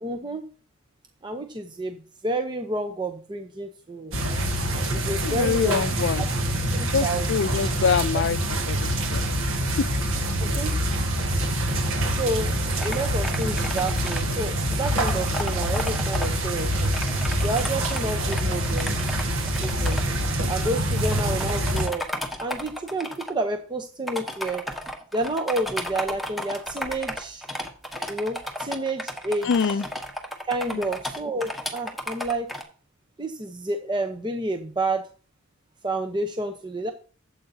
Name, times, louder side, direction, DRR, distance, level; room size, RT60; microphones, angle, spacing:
voice 1, 0.0-0.4 1.2-4.2 4.9-6.3 6.7-7.3 10.4-10.7 11.3-11.5 12.2-12.5 12.8-16.9 17.4-19.0 19.3-20.0 20.5-22.0 22.4-24.7 25.1-27.5 28.1-29.5 30.5-32.5 33.2-35.1 35.8-36.9, right 2 dB, 20° right, 0.7 m, -30 dB
sound 1, 4.1-21.9, right 1 dB, 65° right, 1.6 m, -25 dB
voice 2, 5.1-6.2 6.8-9.2 9.8-9.9 20.9-21.0 29.4-29.9 30.7-30.8, left 6 dB, 60° left, 0.4 m, -25 dB
sound 2, 12.7-14.2 14.7-16.3 16.7-20.0 20.6-20.7 21.0-23.3 24.1-32.6, left 1 dB, ahead, 1.3 m, -34 dB
13.0 x 7.9 x 2.7 m
head